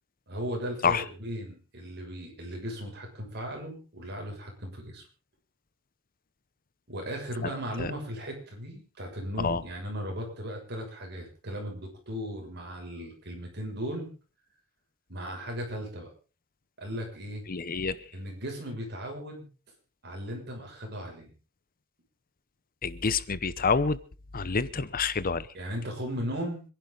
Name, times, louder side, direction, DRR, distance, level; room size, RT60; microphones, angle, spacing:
voice 1, 0.3-5.0 6.9-14.1 15.1-16.1 16.8-17.4 18.1-19.5 20.0-21.3 25.5-26.6, equal, 50° right, 1 dB, 6.7 m, -37 dB
voice 2, 17.5-18.0 22.8-24.0 24.3-25.5, left 5 dB, 45° left, 16 dB, 0.9 m, -27 dB
26.5 x 11.0 x 4.0 m, 0.36 s
head